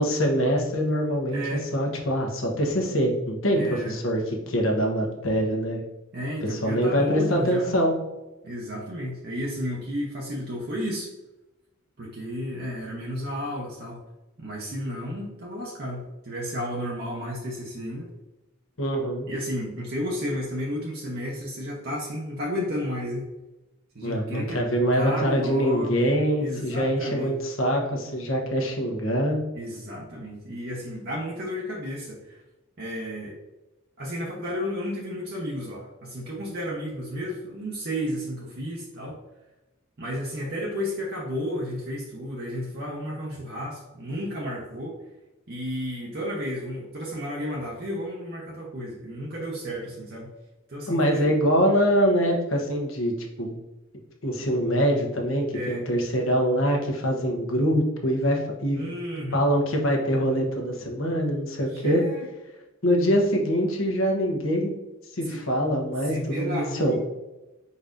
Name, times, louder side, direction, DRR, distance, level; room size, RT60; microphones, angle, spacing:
voice 1, 0.0-1.4 1.7-5.8 6.4-7.9 18.8-19.3 24.0-29.4 50.9-53.6 54.2-58.9 59.3-62.0 62.8-64.8 65.1-67.0, equal, 70° left, 1 dB, 1.0 m, -24 dB
voice 2, 1.3-1.7 3.5-4.0 6.1-7.8 8.4-11.1 12.0-14.0 14.4-18.1 19.3-23.3 23.9-24.6 24.9-26.0 26.4-27.3 29.5-32.4 32.8-33.4 34.0-39.2 40.0-45.0 45.5-50.3 50.7-51.3 55.5-55.8 58.8-59.4 61.7-62.3 65.2-65.4 66.0-67.0, equal, 50° right, -3 dB, 0.8 m, -32 dB
4.9 x 4.1 x 2.6 m, 1.0 s
head